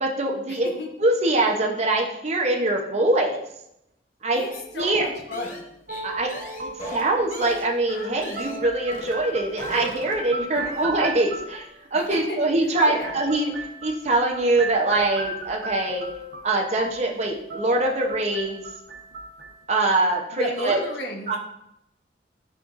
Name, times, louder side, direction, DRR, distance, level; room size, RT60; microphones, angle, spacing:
voice 1, 0.0-0.7 1.0-3.4 4.2-4.4 4.7-5.1 6.0-6.3 6.6-16.1 16.4-18.6 19.7-20.8 21.3-21.4, right 2 dB, 40° right, 0 dB, 0.8 m, -23 dB
sound 1, 4.5-8.7 8.9-9.2 9.5-10.3, right 1 dB, 45° left, 2.1 m, -36 dB
voice 2, 4.7-5.6 10.5-10.9 12.1-12.4 12.8-13.1 20.3-21.3, left 1 dB, 80° left, 0 dB, 1.0 m, -32 dB
sound 2, 5.9-11.7 12.7-19.6, right 2 dB, 60° right, 1.1 m, -36 dB
11.5 x 3.9 x 2.6 m, 0.82 s
head